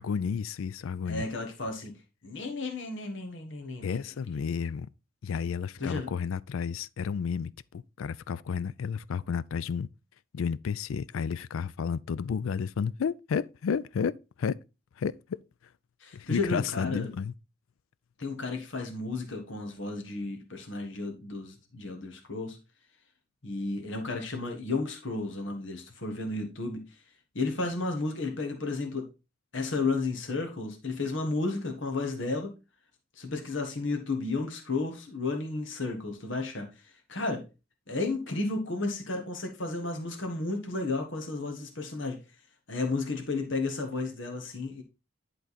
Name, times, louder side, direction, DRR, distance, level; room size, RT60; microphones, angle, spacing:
voice 1, 0.0-1.3 3.8-4.9 5.2-9.9 10.3-14.1 14.4-14.5 15.0-15.4 16.1-17.3, left 6 dB, 80° left, 0.4 m, -31 dB
voice 2, 1.1-1.9 2.2-4.0 5.8-6.1 16.0-17.1 18.2-22.6 23.4-27.0 27.3-29.1 29.5-32.5 33.2-37.4 37.9-42.2 42.7-44.8, left 3 dB, 65° left, 1.4 m, -33 dB
11.0 x 3.8 x 4.1 m
head